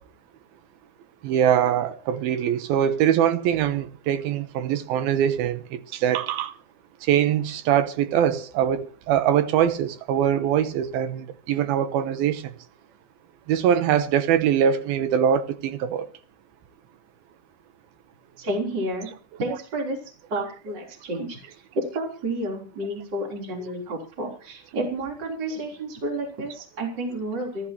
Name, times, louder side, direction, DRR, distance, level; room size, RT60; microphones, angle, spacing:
voice 1, 1.2-6.5 7.0-12.6 13.5-16.1, right 9 dB, 75° right, 2.7 m, -23 dB
voice 2, 18.4-19.1 19.4-20.0 20.3-21.4 21.7-27.7, right 1 dB, 30° right, 4.0 m, -30 dB
28.5 x 11.0 x 3.0 m
omnidirectional pair, 4.6 m